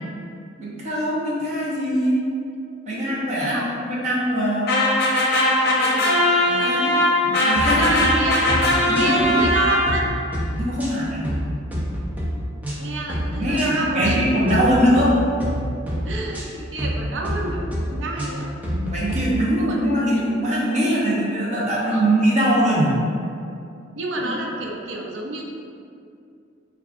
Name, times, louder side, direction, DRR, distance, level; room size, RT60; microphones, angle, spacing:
voice 1, 0.6-2.2 2.9-4.7 6.4-6.9 7.2-7.9 8.9-9.3 10.6-11.4 13.3-15.2 18.7-23.0 24.1-24.3, equal, 35° right, -6 dB, 0.7 m, -22 dB
voice 2, 2.9-3.7 5.6-6.3 6.6-7.2 7.6-8.5 8.9-10.0 12.8-14.6 16.0-16.5 16.7-18.5 19.6-19.8 21.9-22.1 24.0-25.5, right 2 dB, 75° right, 0 dB, 0.5 m, -29 dB
sound 1, 4.7-10.2, left 1 dB, 55° left, 0.6 m, -20 dB
sound 2, 7.6-8.1 8.5-8.7 8.9-9.5 9.9-10.1 10.3-11.4 11.7-12.3 12.6-12.8 13.1-13.7 14.0-14.2 14.5-15.1 15.4-15.6 15.9-16.4 16.8-17.0 17.2-17.8 18.2-19.2, equal, 10° right, 0.4 m, -27 dB
4.8 x 2.3 x 2.4 m, 2.5 s
head